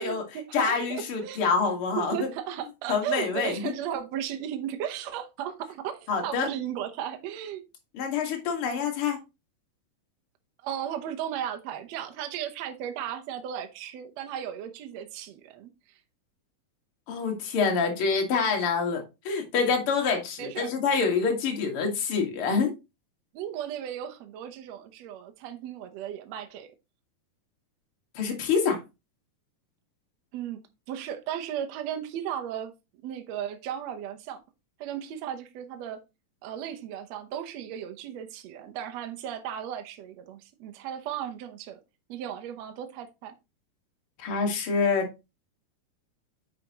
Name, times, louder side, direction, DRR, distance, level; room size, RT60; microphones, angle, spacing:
voice 1, 0.0-1.4 2.0-7.6 10.6-16.0 20.4-20.7 23.3-26.7 30.3-30.6 30.9-32.7 33.0-34.4 34.8-36.0 36.4-41.8 42.1-43.4, right 10 dB, 80° right, 1.5 m, -35 dB
voice 2, 0.5-2.3 2.9-3.7 6.1-6.5 7.9-9.2 17.1-22.7 28.1-28.8 44.2-45.1, left 5 dB, 45° left, 2.1 m, -26 dB
9.0 x 5.9 x 3.0 m
omnidirectional pair, 4.5 m